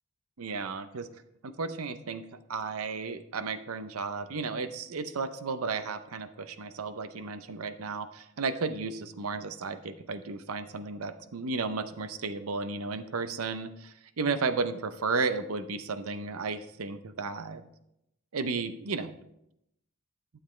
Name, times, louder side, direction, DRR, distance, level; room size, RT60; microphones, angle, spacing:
voice 1, 0.4-1.1 1.4-2.2 2.5-17.6 18.3-19.1, right 4 dB, 80° right, 11 dB, 0.7 m, -33 dB
12.0 x 7.4 x 3.2 m, 0.81 s
head